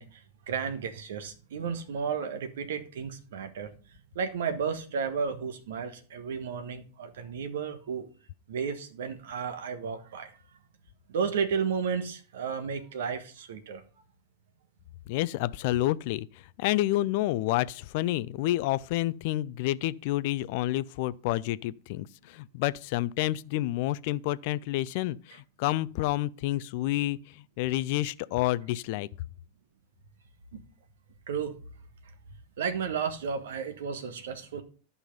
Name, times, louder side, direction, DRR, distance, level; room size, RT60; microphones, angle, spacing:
voice 1, 0.0-8.1 8.5-10.4 11.1-13.8 30.5-30.6 31.3-31.6 32.6-34.6, right 6 dB, 60° right, 1.3 m, -33 dB
voice 2, 15.1-29.1, left 16 dB, 50° left, 0.4 m, -29 dB
11.5 x 5.5 x 5.4 m
figure-of-eight pair, 90°, 0 cm